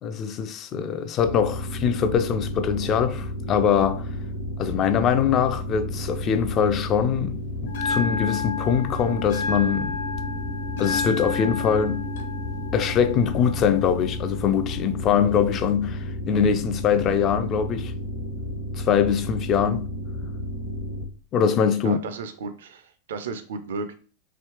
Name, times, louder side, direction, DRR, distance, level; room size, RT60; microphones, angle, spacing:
voice 1, 0.0-4.1 4.6-10.0 10.8-12.1 12.7-17.9 18.8-19.9 21.3-22.0, left 7 dB, 30° left, 0.3 m, -23 dB
sound 1, 1.2-21.1, equal, 90° left, 1.1 m, -32 dB
Bell, 7.7-15.7, left 4 dB, 65° left, 0.9 m, -32 dB
voice 2, 21.8-23.9, right 4 dB, 60° right, 0.4 m, -34 dB
3.1 x 2.9 x 2.9 m
figure-of-eight pair, 90°, 0 cm